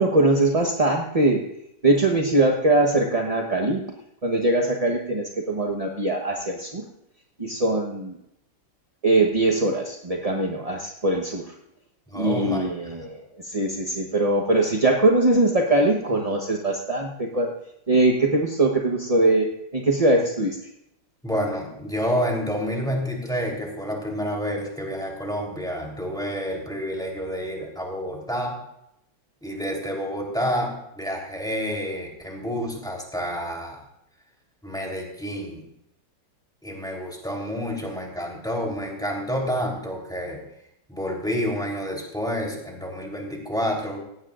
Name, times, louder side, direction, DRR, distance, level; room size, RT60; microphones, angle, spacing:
voice 1, 0.0-1.5 1.8-3.8 4.2-6.8 7.4-8.2 9.0-11.5 12.1-17.5 17.9-20.7, right 2 dB, 30° right, 1 dB, 0.8 m, -22 dB
voice 2, 12.1-12.9 21.2-28.6 29.4-33.8 34.6-35.6 36.6-40.4 40.9-44.0, equal, ahead, -1 dB, 3.3 m, -29 dB
18.5 x 15.5 x 2.5 m, 0.78 s
omnidirectional pair, 2.1 m